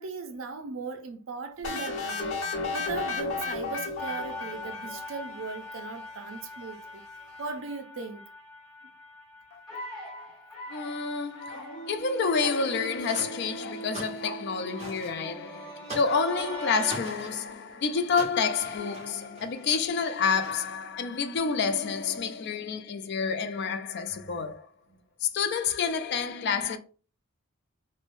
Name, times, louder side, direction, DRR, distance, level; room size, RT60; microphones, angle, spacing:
voice 1, 0.0-2.4 2.7-7.0 7.4-8.2 24.3-24.4 24.9-25.0, right 4 dB, 70° right, 0.5 m, -38 dB
sound 1, 1.6-5.4, left 4 dB, 80° left, 1.0 m, -33 dB
sound 2, 4.0-17.0, right 1 dB, 5° left, 1.2 m, -42 dB
voice 2, 10.7-24.7 25.2-26.8, left 5 dB, 55° left, 0.3 m, -29 dB
sound 3, 12.7-13.3 13.7-14.4 14.8-15.1 15.8-16.2 16.8-17.3 18.1-20.0 20.4-20.8, right 1 dB, 30° right, 1.1 m, -43 dB
3.1 x 2.1 x 2.5 m
head